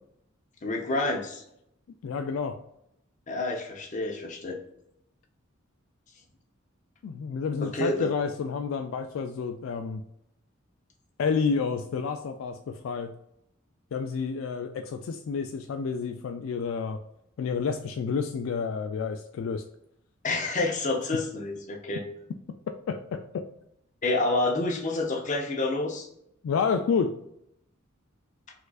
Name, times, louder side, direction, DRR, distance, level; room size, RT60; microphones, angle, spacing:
voice 1, 0.6-1.4 3.3-4.6 7.6-8.1 20.2-22.1 24.0-26.1, left 2 dB, 40° left, 2 dB, 0.7 m, -28 dB
voice 2, 2.0-2.6 7.0-10.0 11.2-13.1 13.9-17.0 17.4-19.6 22.9-23.4 26.4-27.2, left 5 dB, 70° left, 7 dB, 0.3 m, -29 dB
4.2 x 2.4 x 2.4 m, 0.76 s
head